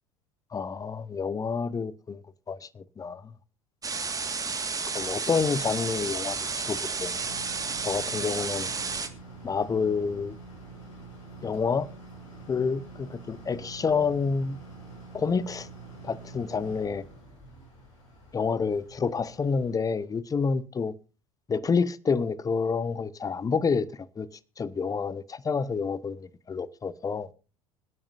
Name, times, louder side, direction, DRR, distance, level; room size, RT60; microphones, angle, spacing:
voice 1, 0.5-2.2 2.5-3.3 4.9-7.1 7.8-8.7 9.4-10.4 11.4-11.9 12.5-14.6 15.1-15.7 16.0-17.0 18.3-20.9 21.5-24.3 24.6-27.3, left 5 dB, 20° left, 0.8 m, -28 dB
sound 1, 3.8-9.1, right 4 dB, 20° right, 1.8 m, -32 dB
sound 2, 5.4-20.1, right 3 dB, 70° left, 7.4 m, -47 dB
26.5 x 8.8 x 2.6 m
figure-of-eight pair, 70°, 18 cm